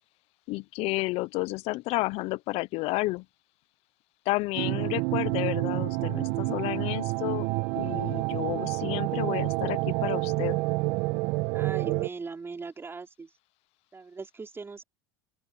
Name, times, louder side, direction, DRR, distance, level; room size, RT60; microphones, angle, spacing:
voice 1, 0.5-3.3 4.3-7.5 7.7-10.6, left 21 dB, 55° left, 0.9 m, -31 dB
sound 1, 4.6-12.1, right 24 dB, 60° right, 1.7 m, -28 dB
voice 2, 11.5-13.3 13.9-14.8, right 4 dB, 20° right, 4.5 m, -39 dB
open air
hypercardioid pair, 90°, 12 cm